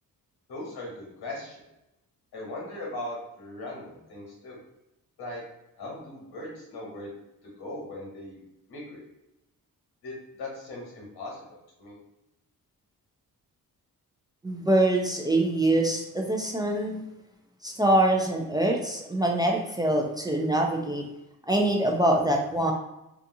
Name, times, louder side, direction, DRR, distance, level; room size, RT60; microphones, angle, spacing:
voice 1, 0.5-1.6 2.3-3.8 4.1-4.6 5.2-5.4 5.8-7.1 7.6-8.4 8.7-9.0 10.0-11.4 11.8-11.9, left 1 dB, 85° left, -3 dB, 1.1 m, -38 dB
voice 2, 14.4-17.0 17.6-21.0 21.5-22.7, right 1 dB, 10° right, 0 dB, 0.3 m, -24 dB
2.6 x 2.3 x 2.6 m, 0.89 s
cardioid pair, 80°, 37 cm